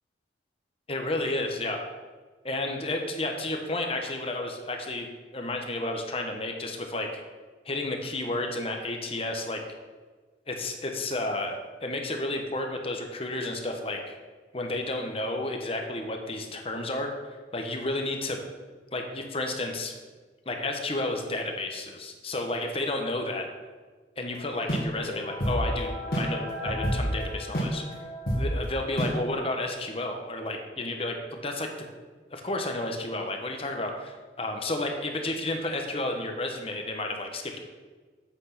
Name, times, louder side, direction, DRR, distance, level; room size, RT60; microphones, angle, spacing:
voice 1, 0.9-1.9 2.4-7.2 7.6-9.6 10.5-14.2 14.5-17.1 17.5-18.5 18.9-19.9 20.5-23.5 24.2-27.8 28.3-31.7 32.3-37.6, left 2 dB, 30° left, 3 dB, 1.0 m, -31 dB
sound 1, 24.7-29.3, equal, 55° left, 2.1 m, -30 dB
8.2 x 6.2 x 5.9 m, 1.4 s
head